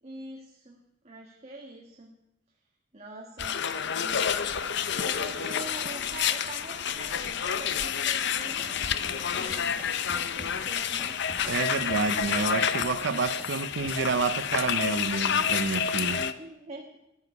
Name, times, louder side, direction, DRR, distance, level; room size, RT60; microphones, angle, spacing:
voice 1, 0.0-2.1 2.9-3.6 3.9-11.2 16.4-17.0, right 2 dB, 35° right, 1.6 m, -44 dB
sound 1, 3.4-16.3, left 8 dB, 60° left, 0.7 m, -29 dB
sound 2, 8.3-14.2, equal, 10° right, 1.5 m, -48 dB
voice 2, 11.5-16.3, right 4 dB, 65° right, 0.6 m, -29 dB
14.0 x 7.2 x 9.5 m
head